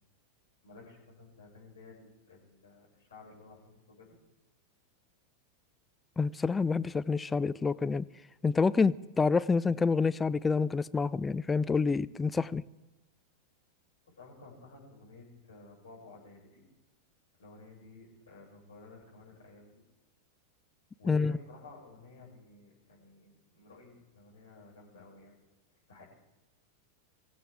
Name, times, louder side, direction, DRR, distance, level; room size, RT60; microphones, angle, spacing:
voice 1, 0.6-4.2 14.1-16.7 17.4-19.8 21.0-25.4 25.9-26.1, left 3 dB, 70° left, 6.9 m, -53 dB
voice 2, 6.2-8.0 8.4-12.6 21.1-21.3, left 4 dB, 15° left, 0.5 m, -27 dB
25.0 x 15.5 x 3.7 m
figure-of-eight pair, 90°, 0 cm